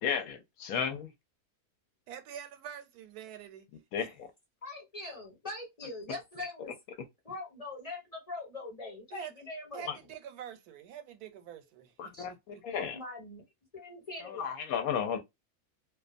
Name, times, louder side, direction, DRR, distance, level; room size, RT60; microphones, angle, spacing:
voice 1, 0.0-1.1 3.9-4.1 9.9-10.0 12.0-13.0 14.2-15.2, left 7 dB, 75° left, 1.0 m, -33 dB
voice 2, 2.1-3.7 4.0-4.1 9.1-9.3 9.7-12.6, right 9 dB, 80° right, 1.1 m, -46 dB
voice 3, 4.6-6.8 7.2-9.9 12.1-12.3 12.9-13.4 13.7-14.5, left 2 dB, 25° left, 1.2 m, -42 dB
2.5 x 2.3 x 2.4 m
omnidirectional pair, 1.6 m